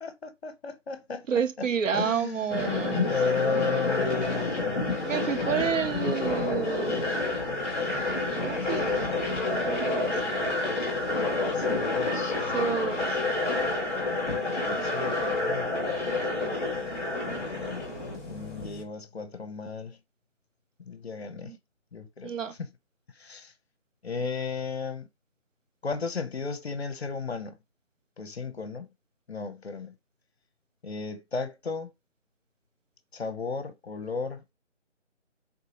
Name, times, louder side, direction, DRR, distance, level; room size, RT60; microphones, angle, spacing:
voice 1, 0.0-1.3 1.6-1.7 1.9-2.6 3.0-4.8 11.5-12.4 14.3-15.7 17.3-17.8 18.3-20.0 20.9-21.6 21.9-22.3 22.6-22.7 23.2-23.5 24.0-25.1 25.8-27.6 28.2-28.9 29.3-29.9 30.8-31.9 33.1-34.5, left 5 dB, 55° left, 0.7 m, -34 dB
voice 2, 1.3-3.1 5.0-7.1 8.4-9.1 9.5-10.2 12.5-13.2 16.3-16.6 21.4-21.6 22.2-22.5, right 7 dB, 90° right, 0.7 m, -30 dB
sound 1, 2.5-18.8, left 2 dB, 10° left, 1.1 m, -29 dB
3.7 x 2.7 x 2.8 m
figure-of-eight pair, 175°, 37 cm